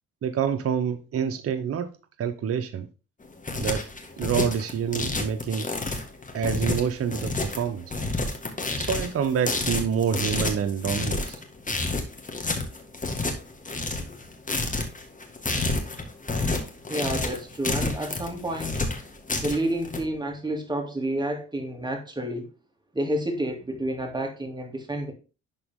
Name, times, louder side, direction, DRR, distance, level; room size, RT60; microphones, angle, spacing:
voice 1, 0.2-1.9 2.2-2.9 3.6-3.9 4.2-5.7 6.3-7.9 8.8-11.4, right 7 dB, 50° right, 0.8 m, -27 dB
sound 1, 3.2-20.0, left 3 dB, 25° left, 1.9 m, -29 dB
voice 2, 16.9-18.8 19.4-22.5 22.9-25.1, right 1 dB, 15° right, 2.5 m, -29 dB
11.5 x 4.0 x 3.7 m
cardioid pair, 90°, 30 cm